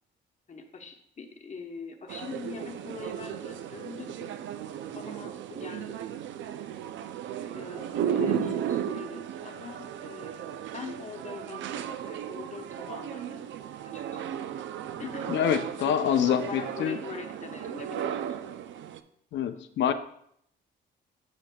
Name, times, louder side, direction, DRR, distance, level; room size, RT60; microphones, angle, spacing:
voice 1, 0.5-4.4 4.9-6.2 7.5-13.6 13.9-14.5 15.0-15.4 15.8-18.4 19.5-19.7, left 5 dB, 35° left, 4 dB, 1.0 m, -43 dB
sound 1, 2.1-19.0, right 9 dB, 75° right, 0.4 m, -35 dB
voice 2, 8.2-8.5 15.3-17.0 19.3-19.9, left 9 dB, 65° left, 10 dB, 0.6 m, -26 dB
7.3 x 6.5 x 2.2 m, 0.69 s
cardioid pair, 90°, 20 cm